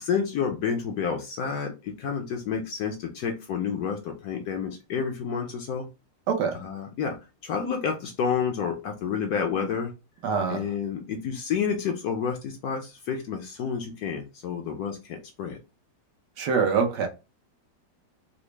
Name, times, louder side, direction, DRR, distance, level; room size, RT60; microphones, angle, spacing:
voice 1, 0.0-5.9 6.5-7.2 7.4-9.9 10.5-15.6, left 6 dB, 70° left, 0.9 m, -29 dB
voice 2, 6.3-6.6 10.2-10.6 16.4-17.1, right 5 dB, 70° right, 1.3 m, -24 dB
4.0 x 2.0 x 3.1 m
omnidirectional pair, 2.0 m